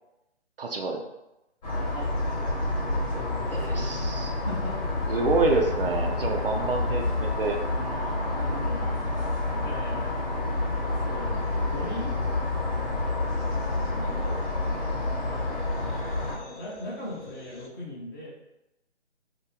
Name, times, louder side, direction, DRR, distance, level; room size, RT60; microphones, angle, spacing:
voice 1, 0.6-1.0 3.5-4.3 5.1-7.6, right 3 dB, 55° right, 3 dB, 0.5 m, -27 dB
sound 1, 1.6-16.3, left 2 dB, 35° left, 1.2 m, -28 dB
voice 2, 1.7-4.7 8.3-8.9 9.5-10.1 11.0-11.3 11.6-12.1 13.9-14.8 16.3-18.3, equal, 15° left, -9 dB, 0.6 m, -40 dB
sound 2, 1.8-17.7, left 3 dB, 80° left, 0.8 m, -46 dB
2.8 x 2.1 x 3.8 m, 0.90 s
figure-of-eight pair, 155°, 34 cm